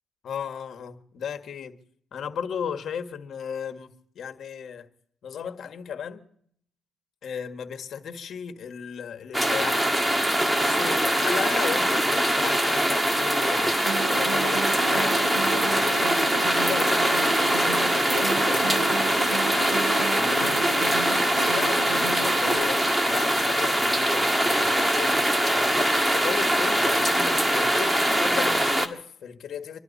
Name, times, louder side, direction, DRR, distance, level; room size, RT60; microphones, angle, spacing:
voice 1, 0.2-1.8 2.1-4.9 5.2-6.2 7.2-9.8 10.5-13.7 14.0-16.1 16.6-19.6 20.1-25.3 25.5-29.8, left 7 dB, 60° left, 1.7 m, -36 dB
sound 1, 9.3-28.9, right 1 dB, 10° right, 1.7 m, -23 dB
sound 2, 13.9-22.6, right 5 dB, 70° right, 5.6 m, -34 dB
26.5 x 12.0 x 4.2 m
cardioid pair, 90°, 0 cm